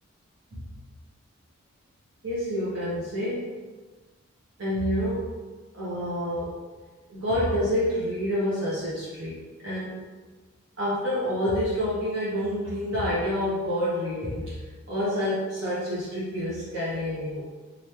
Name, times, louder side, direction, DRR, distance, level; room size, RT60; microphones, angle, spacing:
voice 1, 2.2-3.5 4.6-5.3 5.7-6.5 7.1-9.4 9.6-10.0 10.8-14.6 14.9-17.4, equal, 70° right, -10 dB, 0.9 m, -28 dB
3.0 x 2.6 x 3.3 m, 1.3 s
head